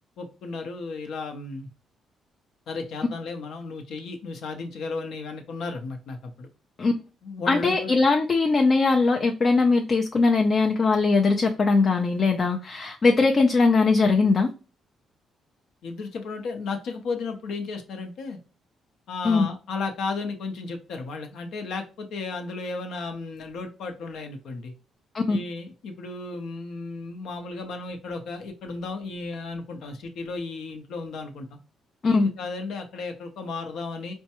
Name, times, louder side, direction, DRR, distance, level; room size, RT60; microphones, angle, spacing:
voice 1, 0.2-1.7 2.7-6.5 7.2-7.9 15.8-18.4 19.1-24.7 25.3-31.6 32.0-34.1, left 3 dB, 75° left, 0.7 m, -34 dB
voice 2, 7.5-14.5 19.2-19.5 25.1-25.4 32.0-32.3, left 3 dB, 40° left, 0.4 m, -20 dB
4.4 x 2.2 x 2.9 m
cardioid pair, 90°, 0 cm